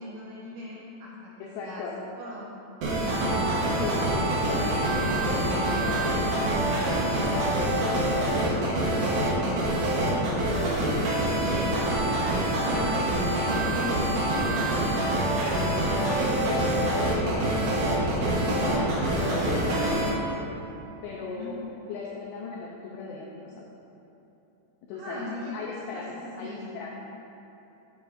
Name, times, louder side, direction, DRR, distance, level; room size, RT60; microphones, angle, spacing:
voice 1, 0.0-1.9 2.1-2.5 3.1-3.9 10.6-17.0 21.3-21.5 24.9-25.5 25.9-26.8, left 1 dB, 85° right, -10 dB, 3.9 m, -40 dB
voice 2, 1.4-1.9 3.2-9.7 10.0-10.4 16.1-17.6 18.2-20.3 21.0-23.7 24.9-25.3 25.5-27.0, left 4 dB, 80° left, -2 dB, 2.3 m, -38 dB
sound 1, 2.8-20.1, right 1 dB, 65° right, 2.1 m, -25 dB
12.5 x 7.4 x 2.7 m, 3.0 s
omnidirectional pair, 5.3 m